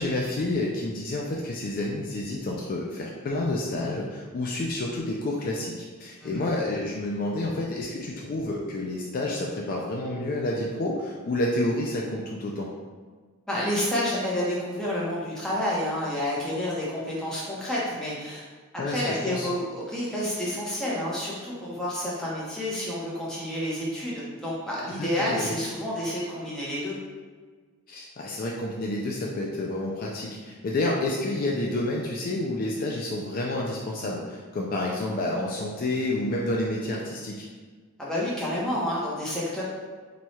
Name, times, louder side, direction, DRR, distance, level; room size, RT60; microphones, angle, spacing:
voice 1, 0.0-12.7 18.8-19.5 25.0-25.5 27.9-37.5, left 1 dB, 40° left, -2 dB, 0.3 m, -29 dB
voice 2, 13.5-18.4 18.9-27.0 38.0-39.6, left 1 dB, 5° left, -7 dB, 0.8 m, -29 dB
3.0 x 2.3 x 4.1 m, 1.5 s
head